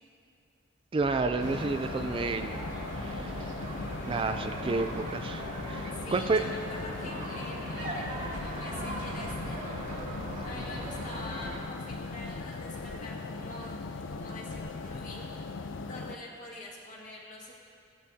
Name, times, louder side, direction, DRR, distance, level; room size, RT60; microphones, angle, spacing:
voice 1, 0.9-2.6 3.0-3.5 4.1-6.5, right 3 dB, 30° right, 8 dB, 0.3 m, -30 dB
sound 1, 0.9-11.6, right 1 dB, 45° right, 1.9 m, -39 dB
sound 2, 1.4-16.2, left 3 dB, 75° left, 0.5 m, -39 dB
voice 2, 5.9-9.6 10.4-15.3 15.8-17.5, left 2 dB, 45° left, -3 dB, 2.0 m, -45 dB
sound 3, 8.1-14.9, right 1 dB, 85° right, 1.8 m, -51 dB
16.0 x 11.0 x 2.8 m, 2.4 s
head